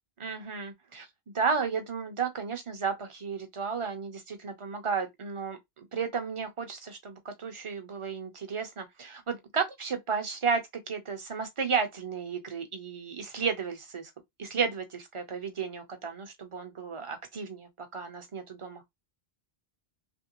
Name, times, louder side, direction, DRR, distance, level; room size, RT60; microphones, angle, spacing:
voice 1, 0.2-1.1 1.3-10.6 10.9-14.1 14.4-18.8, right 5 dB, 35° right, 0.7 m, -33 dB
3.1 x 2.6 x 2.9 m
omnidirectional pair, 1.1 m